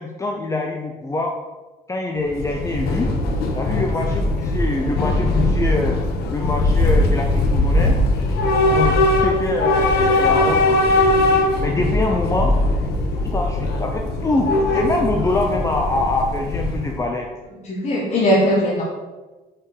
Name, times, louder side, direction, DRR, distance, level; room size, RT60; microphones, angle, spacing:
voice 1, 0.0-1.4 1.9-3.1 3.5-6.0 6.3-8.0 8.7-9.0 9.2-10.9 11.6-12.5 13.2-17.3, left 2 dB, 20° left, 2 dB, 0.8 m, -24 dB
Train / Subway metro underground, 2.2-17.0, left 2 dB, 80° left, 1.3 m, -20 dB
voice 2, 17.6-18.8, equal, 45° left, -4 dB, 1.6 m, -19 dB
5.8 x 5.2 x 6.7 m, 1.2 s
cardioid pair, 130°, 16 cm